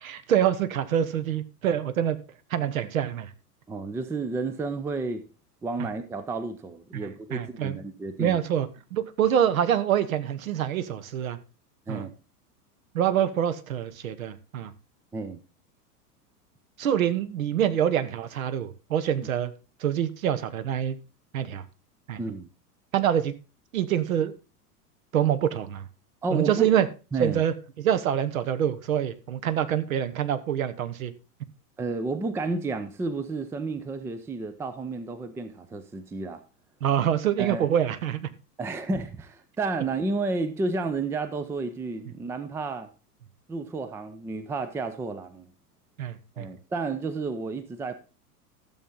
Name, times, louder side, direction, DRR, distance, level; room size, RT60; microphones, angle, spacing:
voice 1, 0.0-2.2 2.5-3.3 5.8-5.9 6.9-7.8 8.2-11.4 11.9-12.0 12.9-14.7 16.8-19.5 19.8-21.0 21.3-21.6 22.1-22.2 22.9-23.3 23.7-24.3 25.1-25.8 26.3-26.9 27.2-31.1 36.8-38.3 46.0-46.5, right 10 dB, 60° right, 1.1 m, -26 dB
voice 2, 3.7-5.2 5.6-8.4 11.9-12.1 15.1-15.4 22.2-22.5 26.2-26.7 27.1-27.4 31.8-36.4 37.4-37.7 38.6-42.9 43.5-45.5 46.4-47.9, right 3 dB, 5° right, 0.5 m, -31 dB
12.5 x 7.3 x 3.8 m
figure-of-eight pair, 90°, 47 cm